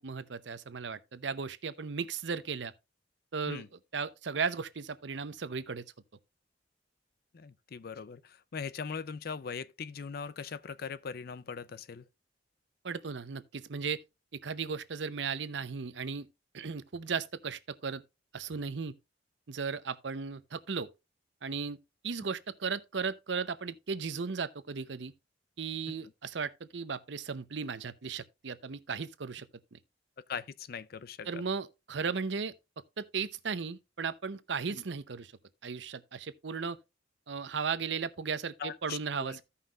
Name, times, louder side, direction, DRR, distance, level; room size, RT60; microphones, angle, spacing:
voice 1, 0.0-2.7 3.3-3.6 3.9-5.8 12.8-14.0 14.4-16.3 16.5-18.0 18.3-18.9 19.5-20.9 21.4-21.8 22.0-25.1 25.6-29.5 29.7-29.8 31.2-32.5 33.0-35.3 35.6-36.8 37.3-39.4, right 5 dB, 70° right, 0.7 m, -36 dB
voice 2, 7.3-12.0 25.9-26.0 30.3-31.4 34.7-34.8 38.6-39.4, left 6 dB, 55° left, 0.5 m, -40 dB
15.5 x 5.6 x 2.4 m
head